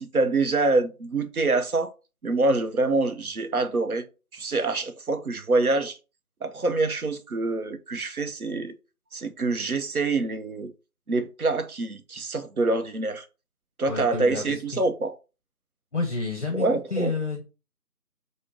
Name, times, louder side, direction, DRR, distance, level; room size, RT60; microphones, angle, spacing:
voice 1, 0.0-1.9 2.2-4.1 4.3-6.0 6.4-8.7 9.1-10.7 11.1-13.3 13.8-15.1 16.5-17.1, right 3 dB, 70° right, 0.7 m, -25 dB
voice 2, 13.9-14.8 15.9-17.4, left 3 dB, 50° left, 0.8 m, -30 dB
5.1 x 2.1 x 3.7 m
figure-of-eight pair, 170°, 46 cm